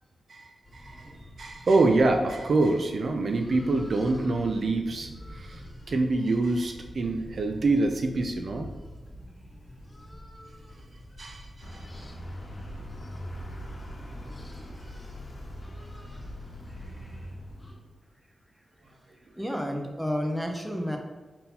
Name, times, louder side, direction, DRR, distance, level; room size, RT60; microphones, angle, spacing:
sound 1, 0.6-17.7, equal, 10° left, 1.4 m, -46 dB
voice 1, 0.7-5.6 5.9-8.7 11.2-11.8, right 2 dB, 60° right, 4 dB, 0.4 m, -26 dB
Vehicle, 11.6-18.0, equal, 50° left, 1.0 m, -42 dB
voice 2, 19.4-21.0, equal, 5° right, 2 dB, 0.6 m, -30 dB
4.1 x 3.8 x 2.8 m, 1.3 s
cardioid pair, 80°, 0 cm